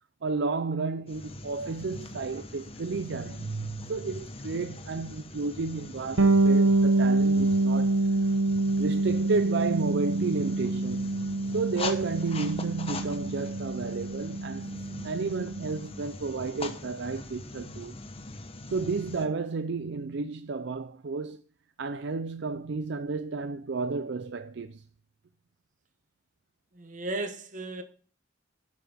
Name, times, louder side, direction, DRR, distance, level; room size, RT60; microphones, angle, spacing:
voice 1, 0.2-8.0 8.8-11.1 11.5-18.0 18.7-21.4 21.8-24.8, right 4 dB, 60° right, 0.5 m, -32 dB
sound 1, 1.1-19.2, left 2 dB, 30° left, 1.0 m, -42 dB
Bass guitar, 6.2-15.8, right 2 dB, 75° right, 1.0 m, -26 dB
voice 2, 26.7-27.8, right 2 dB, 40° right, 1.3 m, -35 dB
10.5 x 7.5 x 3.5 m
head